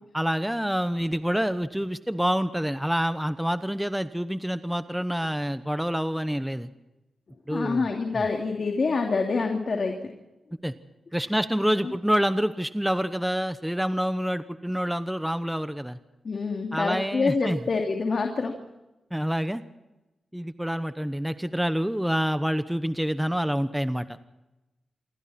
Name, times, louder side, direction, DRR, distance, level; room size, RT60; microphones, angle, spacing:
voice 1, 0.1-6.7 7.5-7.9 10.6-10.7 11.1-16.0 16.7-17.6 19.1-19.6 20.3-24.2, equal, 5° right, 11 dB, 1.0 m, -27 dB
voice 2, 7.5-9.9 11.8-11.9 16.2-18.5, left 4 dB, 50° left, 3 dB, 2.6 m, -26 dB
27.5 x 23.5 x 4.3 m, 1.0 s
wide cardioid pair, 105°, 0 cm